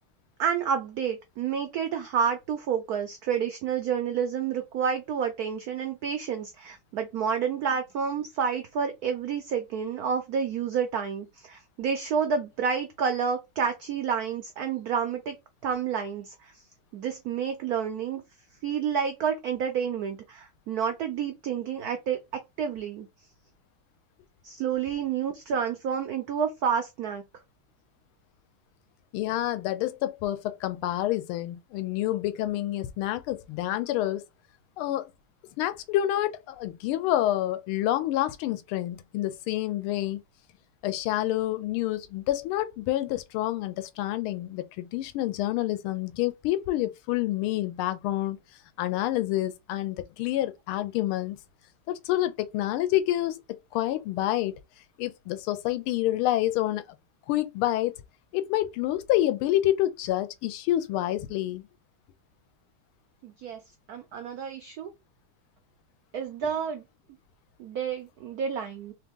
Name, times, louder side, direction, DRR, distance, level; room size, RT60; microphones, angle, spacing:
voice 1, 0.4-15.4 15.6-16.5 16.9-18.2 18.6-22.2 22.6-23.1 24.4-27.2 63.2-63.6 63.9-64.9 66.1-66.8 67.6-68.9, right 7 dB, 85° right, 0.8 m, -29 dB
voice 2, 29.1-34.2 34.8-35.1 35.6-40.2 40.8-48.4 48.8-51.4 51.9-54.6 55.0-56.9 57.3-57.9 58.3-61.7, left 14 dB, 85° left, 1.4 m, -28 dB
3.4 x 2.9 x 3.5 m
omnidirectional pair, 2.3 m